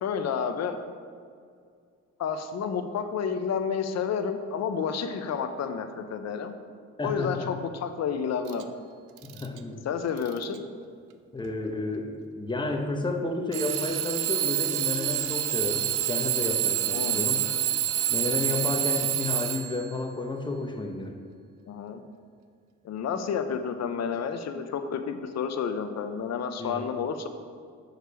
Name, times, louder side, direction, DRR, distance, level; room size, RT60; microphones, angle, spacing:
voice 1, 0.0-0.8 2.2-6.5 7.0-8.6 9.8-10.6 16.9-17.3 21.7-22.0 22.8-27.3, left 6 dB, 60° left, 8 dB, 0.7 m, -30 dB
voice 2, 7.0-7.5 9.2-9.8 11.3-17.5 18.1-21.1 26.6-26.9, left 2 dB, 15° left, 3 dB, 1.0 m, -31 dB
Alarm / Clock, 8.5-8.6 9.2-9.6 10.2-10.6 11.4-11.5 13.5-19.9, right 12 dB, 90° right, 0.5 m, -28 dB
6.5 x 4.7 x 6.8 m, 2.2 s
cardioid pair, 90°, 30 cm